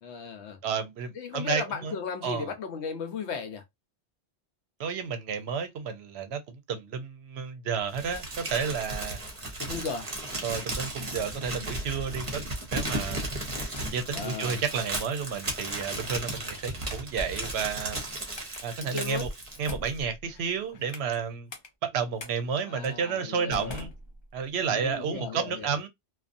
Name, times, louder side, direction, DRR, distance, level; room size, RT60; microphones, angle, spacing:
voice 1, 0.0-0.6 1.1-3.6 9.6-10.1 14.1-14.6 18.8-19.3 22.6-23.7 24.7-25.8, left 5 dB, 75° left, 1.0 m, -36 dB
voice 2, 0.6-1.9 2.2-2.5 4.8-9.2 10.4-12.4 12.7-13.3 13.9-18.0 18.6-19.3 19.6-21.5 21.8-23.9 24.3-25.9, right 6 dB, 70° right, 0.8 m, -31 dB
Crumpling crinkling, 7.9-20.0, right 1 dB, 35° right, 0.7 m, -35 dB
sound 1, 13.5-14.1 14.7-14.9 15.7-16.0 16.5-16.8 17.3-17.7 18.4-18.6 19.0-19.1 19.5-21.2 21.5-21.7 22.2-22.3 22.8-23.0 23.5-24.6, left 2 dB, 45° left, 0.3 m, -43 dB
2.5 x 2.3 x 2.5 m
omnidirectional pair, 1.2 m